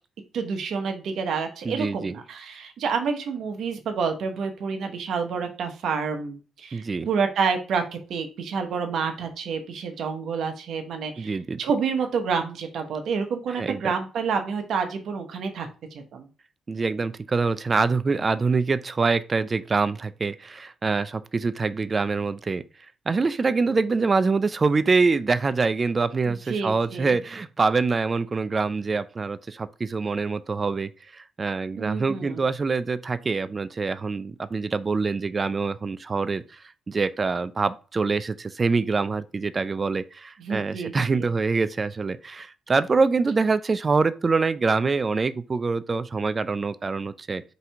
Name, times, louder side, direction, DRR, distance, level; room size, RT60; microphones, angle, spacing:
voice 1, 0.3-16.3 26.3-27.2 31.8-32.4 40.4-41.3, right 5 dB, 65° right, 0.9 m, -29 dB
voice 2, 1.6-2.1 6.7-7.1 11.2-11.6 13.6-13.8 16.7-22.6 23.1-47.4, right 4 dB, 30° right, 0.4 m, -25 dB
4.0 x 2.8 x 4.4 m
cardioid pair, 90°, 0 cm